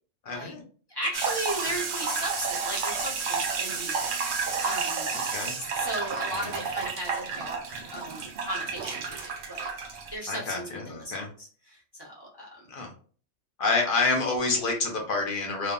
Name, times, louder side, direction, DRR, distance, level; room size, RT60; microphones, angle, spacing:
voice 1, 0.2-0.6 5.3-5.6 6.3-6.5 10.3-11.3 12.7-12.9 13.6-15.7, left 3 dB, 55° left, 2 dB, 0.7 m, -28 dB
voice 2, 0.9-5.2 5.7-9.7 10.1-12.5, right 1 dB, 25° left, -5 dB, 0.8 m, -36 dB
sound 1, 1.1-10.1, right 5 dB, 60° right, 0.6 m, -31 dB
3.2 x 2.1 x 2.4 m, 0.43 s
omnidirectional pair, 1.2 m